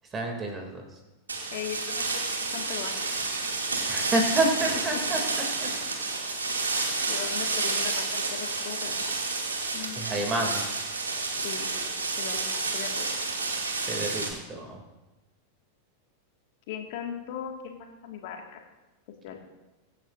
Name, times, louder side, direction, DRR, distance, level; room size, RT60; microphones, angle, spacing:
voice 1, 0.1-0.8 3.9-5.2 5.6-5.7 10.0-10.6 13.8-14.8, right 2 dB, 20° right, 2 dB, 2.8 m, -29 dB
sound 1, 1.3-14.3, right 3 dB, 75° right, 2.4 m, -30 dB
voice 2, 1.5-2.0 2.5-3.1 4.4-4.5 4.9-5.0 7.1-9.2 9.7-10.0 11.4-11.7 12.2-13.1 16.7-18.6 19.2-19.4, left 9 dB, 50° left, 3 dB, 2.0 m, -38 dB
23.0 x 10.0 x 2.6 m, 1.1 s
figure-of-eight pair, 90°, 0 cm